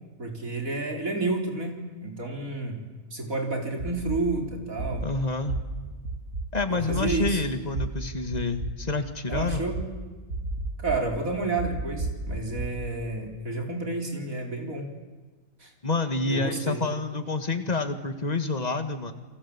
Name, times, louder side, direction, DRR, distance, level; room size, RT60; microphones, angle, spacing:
voice 1, 0.2-2.8 3.1-5.1 6.7-7.4 9.3-9.8 10.8-14.9 15.6-15.7 16.2-16.8, right 3 dB, 90° right, 3 dB, 4.9 m, -30 dB
sound 1, 3.8-4.2 4.8-5.0 5.5-5.6 6.0-6.4 6.9-7.3 7.7-7.8 8.3-8.7 9.3-9.8 10.3-11.0 11.6-12.7, right 2 dB, 75° right, 7.9 m, -30 dB
voice 2, 5.0-5.5 6.5-9.6 15.8-19.1, left 3 dB, 30° left, 8 dB, 2.1 m, -28 dB
29.5 x 23.0 x 8.8 m, 1.3 s
omnidirectional pair, 1.4 m